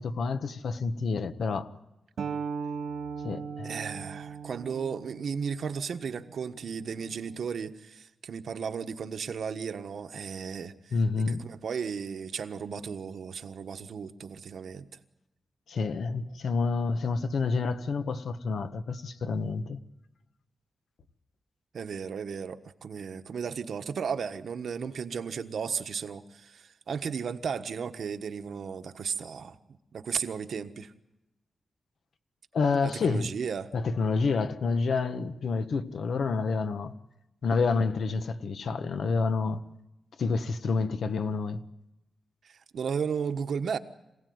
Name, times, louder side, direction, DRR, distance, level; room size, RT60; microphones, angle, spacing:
voice 1, 0.0-1.7 3.2-3.7 3.9-4.0 10.9-11.4 15.7-19.8 32.5-33.3 33.7-36.9 37.4-39.6 40.2-41.6, left 4 dB, 65° left, 1.3 m, -28 dB
sound 1, 2.2-7.4, right 5 dB, 90° right, 2.1 m, -39 dB
voice 2, 3.6-10.9 11.3-14.9 21.7-29.6 29.9-30.9 32.8-33.7 42.4-43.8, right 6 dB, 65° right, 1.3 m, -35 dB
26.5 x 17.0 x 9.5 m
wide cardioid pair, 150°, 0 cm